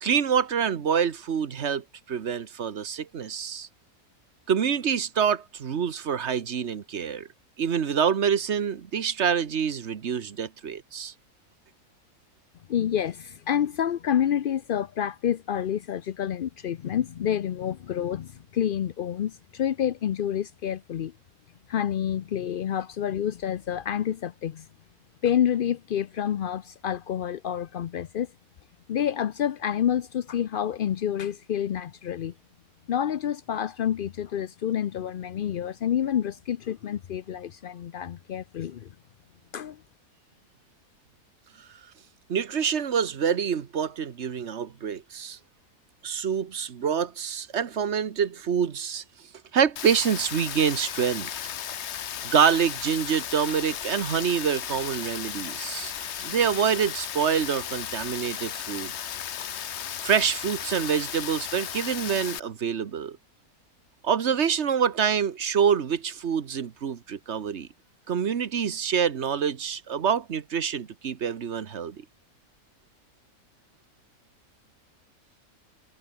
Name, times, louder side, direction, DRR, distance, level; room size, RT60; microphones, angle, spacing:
voice 1, 0.0-3.7 4.5-7.3 7.6-11.1 42.3-45.4 46.0-49.0 49.5-51.3 52.2-58.9 60.0-63.2 64.0-67.7 68.1-72.0, right 7 dB, 50° right, 1.3 m, -26 dB
voice 2, 12.7-21.1 21.7-24.7 25.2-28.3 28.9-32.3 32.9-38.9 39.5-39.8, left 9 dB, 70° left, 0.5 m, -28 dB
Rain, 49.8-62.4, left 9 dB, 55° left, 1.0 m, -35 dB
omnidirectional pair, 1.6 m